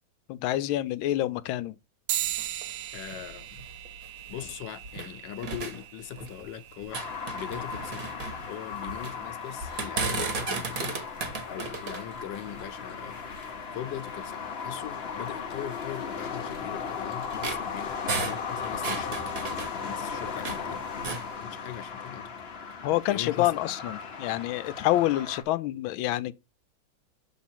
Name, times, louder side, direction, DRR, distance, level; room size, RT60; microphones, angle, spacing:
voice 1, 0.3-1.8 22.8-26.3, left 15 dB, 90° left, 1.4 m, -27 dB
sound 1, 2.1-11.9, right 13 dB, 75° right, 1.0 m, -40 dB
sound 2, 2.2-5.1 5.4-6.5 6.8-9.2 9.6-13.6 14.2-14.3 14.8-15.0 15.7-20.7 20.9-21.3, right 4 dB, 50° right, 1.6 m, -35 dB
voice 2, 2.9-3.6 4.3-7.1 7.3-8.2 8.5-11.0 11.5-13.2 13.7-19.2 19.7-20.9 21.4-22.3 23.1-23.6, left 10 dB, 70° left, 1.4 m, -40 dB
sound 3, 6.9-25.4, left 6 dB, 45° left, 0.8 m, -37 dB
7.3 x 3.7 x 4.3 m
omnidirectional pair, 2.1 m